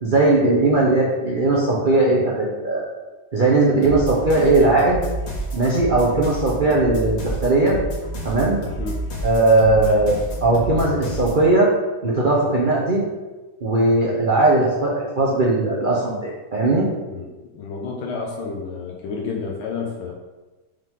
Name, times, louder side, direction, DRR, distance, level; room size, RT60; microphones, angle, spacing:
voice 1, 0.0-2.9 3.3-5.0 5.5-7.8 8.2-8.6 9.2-11.7 12.0-13.0 13.6-16.9, right 2 dB, 45° right, -4 dB, 0.6 m, -18 dB
sound 1, 3.8-11.4, right 1 dB, 65° left, 2.2 m, -30 dB
voice 2, 17.1-20.1, left 4 dB, 90° left, 0 dB, 1.6 m, -30 dB
5.5 x 5.5 x 3.7 m, 1.2 s
omnidirectional pair, 2.2 m